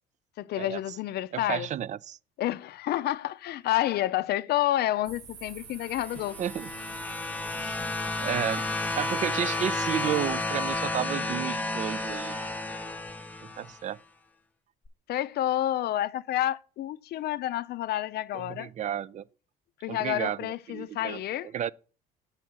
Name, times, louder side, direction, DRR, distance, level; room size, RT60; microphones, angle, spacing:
voice 1, 0.4-1.7 2.4-6.4 15.1-18.7 19.8-21.5, left 13 dB, 55° left, 0.5 m, -29 dB
voice 2, 1.3-2.2 6.4-6.7 7.6-7.8 8.2-8.7 9.0-12.4 13.6-14.0 18.3-19.2 19.9-21.7, right 10 dB, 40° right, 0.4 m, -32 dB
sound 1, 5.0-11.0, right 6 dB, 70° right, 1.5 m, -49 dB
sound 2, 6.0-13.8 14.8-14.9, left 2 dB, 10° left, 0.7 m, -32 dB
7.3 x 4.1 x 6.0 m
supercardioid pair, 85°, 19 cm